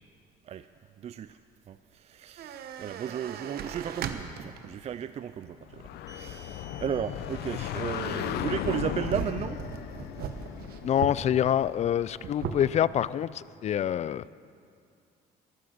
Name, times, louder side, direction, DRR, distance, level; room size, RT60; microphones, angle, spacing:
voice 1, 1.0-1.4 1.7-9.6, right 9 dB, 40° right, 12 dB, 0.4 m, -35 dB
sound 1, 2.4-4.7 5.3-5.4 7.4-7.8 8.2-11.3 11.6-11.7 12.0-12.6, right 8 dB, 65° right, 1.0 m, -38 dB
sound 2, 5.6-12.2, left 11 dB, 75° left, 0.7 m, -36 dB
sound 3, 5.8-12.7, right 1 dB, 20° right, 2.7 m, -53 dB
voice 2, 10.8-14.2, left 10 dB, 40° left, 19 dB, 0.4 m, -26 dB
14.0 x 13.0 x 6.5 m, 2.3 s
cardioid pair, 110°, 17 cm